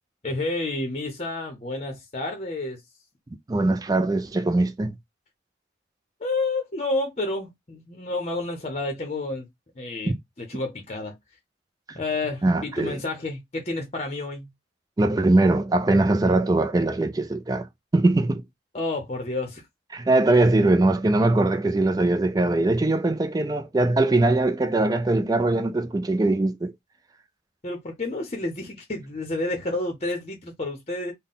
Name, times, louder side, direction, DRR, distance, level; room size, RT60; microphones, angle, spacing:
voice 1, 0.2-2.8 6.2-9.4 9.8-11.1 12.0-14.5 18.7-19.6 27.6-31.1, left 2 dB, 35° left, 0.7 m, -30 dB
voice 2, 3.5-4.9 10.1-10.2 11.9-12.0 12.4-13.0 15.0-17.7 17.9-18.4 19.9-26.7, right 2 dB, 20° right, 0.3 m, -21 dB
3.7 x 2.1 x 3.8 m
head